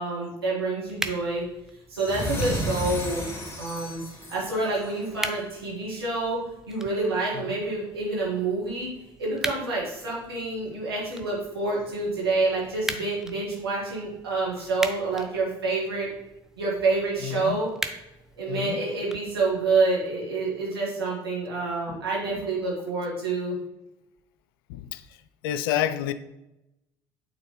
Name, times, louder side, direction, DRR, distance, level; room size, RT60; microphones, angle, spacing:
voice 1, 0.0-1.4 1.9-3.3 3.6-4.0 4.3-6.4 6.7-8.9 9.2-16.1 16.6-17.7 18.4-23.6, right 3 dB, 90° right, 2.0 m, -27 dB
sound 1, 0.9-19.8, right 1 dB, 5° right, 0.6 m, -40 dB
sound 2, 1.9-5.3, equal, 20° left, 2.2 m, -33 dB
voice 2, 17.2-17.6 18.5-18.8 21.9-22.0 24.7-25.0 25.4-26.1, left 11 dB, 75° left, 0.4 m, -29 dB
9.0 x 4.0 x 3.1 m
figure-of-eight pair, 55°, 12 cm